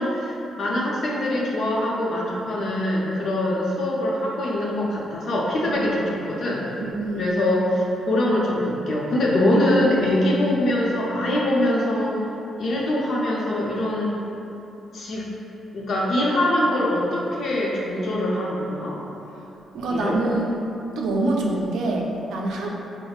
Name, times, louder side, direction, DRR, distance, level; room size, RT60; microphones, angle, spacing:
voice 1, 0.0-6.6 7.1-12.1 12.6-14.1 14.9-15.3 15.7-18.9 19.9-20.2 22.6-22.7, left 1 dB, 60° left, -4 dB, 0.6 m, -23 dB
voice 2, 6.8-7.4 19.7-20.5 21.0-22.7, right 2 dB, 85° right, -1 dB, 0.4 m, -26 dB
4.9 x 2.0 x 2.3 m, 2.9 s
cardioid pair, 95°, 0 cm